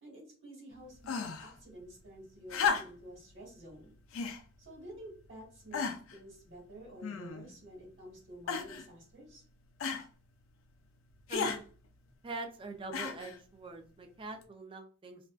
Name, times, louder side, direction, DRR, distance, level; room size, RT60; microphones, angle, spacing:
voice 1, 0.0-3.9 4.6-5.8 6.1-9.4, right 1 dB, 60° right, -5 dB, 1.2 m, -50 dB
sound 1, 1.0-1.5 2.5-3.2 4.1-4.4 5.2-5.3 5.7-6.2 7.0-7.6 8.5-8.9 9.8-10.1 11.3-11.6 12.9-13.4 14.4-14.5, left 5 dB, 80° left, 0.4 m, -34 dB
voice 2, 11.3-11.6 12.2-15.3, right 2 dB, 25° right, 5 dB, 0.3 m, -43 dB
2.4 x 2.2 x 2.3 m, 0.41 s
head